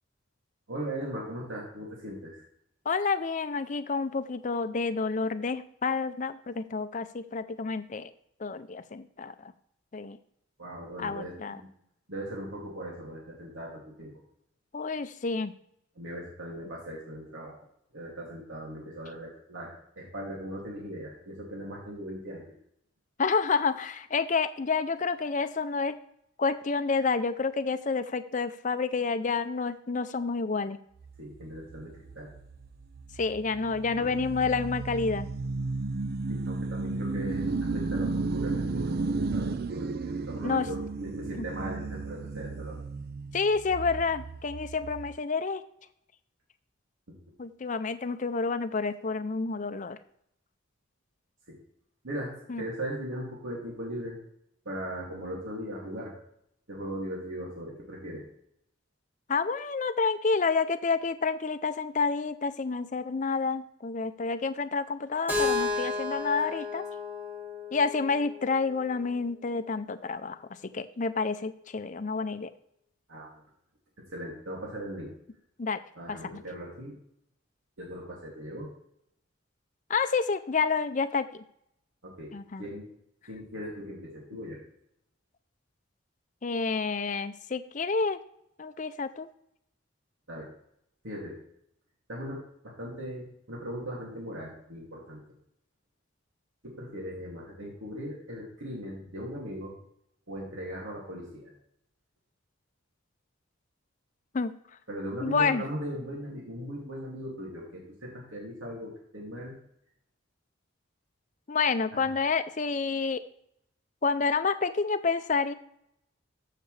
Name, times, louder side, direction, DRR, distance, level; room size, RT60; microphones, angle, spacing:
voice 1, 0.7-2.4 10.6-11.7 12.1-14.1 16.0-17.5 17.9-22.5 31.2-32.3 34.0-34.1 36.3-42.8 51.5-51.6 52.0-52.3 52.6-54.2 54.6-56.1 56.7-58.2 73.1-73.3 74.1-75.1 76.0-76.9 77.8-78.7 82.0-82.3 82.6-82.9 83.3-84.6 90.3-90.5 91.0-91.4 92.1-95.2 96.6-99.8 100.3-101.5 104.9-109.5 111.9-112.1, equal, 80° right, -3 dB, 2.6 m, -39 dB
voice 2, 2.9-8.1 8.4-9.5 9.9-10.2 11.0-11.6 14.7-15.5 23.2-26.0 26.4-30.8 33.2-35.3 40.4-40.7 41.4-41.5 43.3-45.6 47.4-50.0 52.5-52.6 59.3-66.8 67.7-70.5 70.7-72.5 75.6-75.8 76.1-76.4 79.9-81.4 82.3-82.6 86.4-88.2 88.6-89.3 104.3-104.6 105.2-105.6 111.5-113.2 114.0-115.5, left 4 dB, 40° left, 12 dB, 0.5 m, -29 dB
sound 1, 31.0-45.2, right 3 dB, 50° right, 0.4 m, -34 dB
Keyboard (musical), 65.3-69.2, left 3 dB, 10° right, 2.5 m, -33 dB
14.0 x 6.6 x 3.3 m, 0.73 s
head